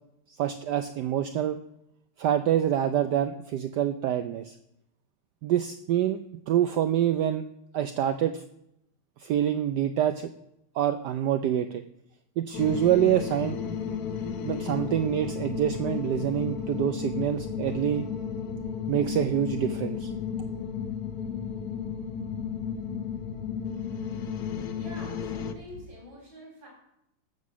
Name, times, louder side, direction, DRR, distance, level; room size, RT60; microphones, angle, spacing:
voice 1, 0.3-1.6 2.2-4.6 5.4-6.2 6.5-7.4 7.7-8.4 9.2-10.3 10.7-11.8 12.4-13.6 14.4-18.1 18.9-20.1, right 10 dB, 85° right, 10 dB, 0.9 m, -26 dB
sound 1, 12.5-25.5, left 7 dB, 65° left, 0.9 m, -33 dB
voice 2, 24.7-26.7, left 1 dB, 55° right, -1 dB, 4.6 m, -46 dB
14.0 x 6.4 x 6.1 m, 0.80 s
omnidirectional pair, 2.4 m